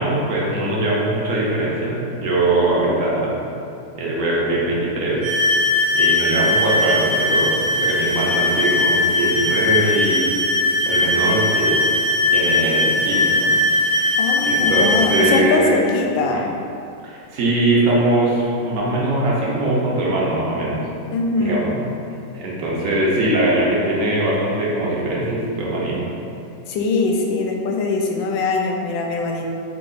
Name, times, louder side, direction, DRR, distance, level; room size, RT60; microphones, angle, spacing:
voice 1, 0.0-3.4 3.9-5.2 5.9-10.3 10.9-11.9 12.3-13.5 13.8-14.2 14.4-15.8 17.0-20.8 21.4-21.8 22.3-26.1, right 1 dB, 60° right, -5 dB, 0.9 m, -21 dB
sound 1, 5.2-15.4, left 2 dB, 85° right, 1.6 m, -19 dB
voice 2, 14.2-16.5 21.1-21.6 26.7-29.5, left 3 dB, 90° left, 1 dB, 1.3 m, -22 dB
4.5 x 2.4 x 3.8 m, 2.6 s
omnidirectional pair, 2.0 m